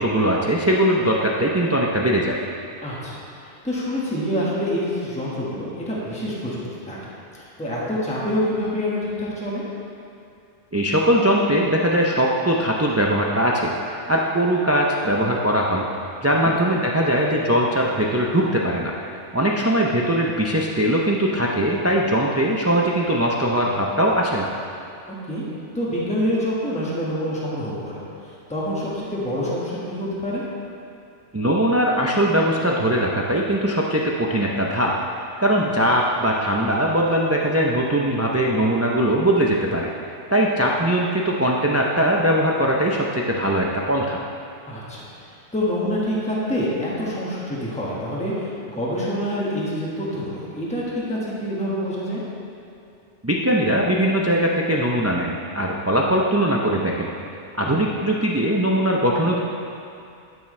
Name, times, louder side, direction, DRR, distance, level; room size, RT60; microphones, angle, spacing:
voice 1, 0.0-2.4 10.7-13.7 14.1-15.8 16.2-18.9 19.3-24.5 31.3-34.9 35.4-39.9 40.3-44.2 53.2-57.1 57.6-59.4, right 1 dB, 25° right, -2 dB, 0.3 m, -20 dB
voice 2, 2.8-3.2 3.6-6.6 6.9-7.0 7.3-9.6 16.4-16.5 25.3-25.4 25.7-28.0 28.5-30.4 35.6-35.7 44.7-45.1 45.5-52.2 57.6-57.8, equal, 5° left, -7 dB, 1.4 m, -26 dB
12.5 x 6.0 x 3.2 m, 2.5 s
omnidirectional pair, 1.2 m